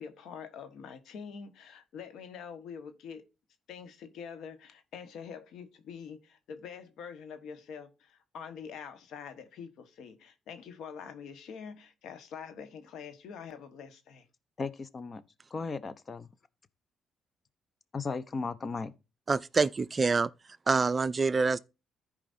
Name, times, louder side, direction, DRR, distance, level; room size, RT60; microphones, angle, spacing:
voice 1, 0.0-3.3 3.7-14.3, left 6 dB, 80° left, 1.3 m, -45 dB
voice 2, 14.6-15.2 15.5-16.3 17.9-18.9, left 4 dB, 40° left, 0.8 m, -36 dB
voice 3, 19.3-20.3 20.7-21.6, right 4 dB, 35° right, 0.4 m, -26 dB
14.5 x 5.0 x 2.6 m
cardioid pair, 90°, 0 cm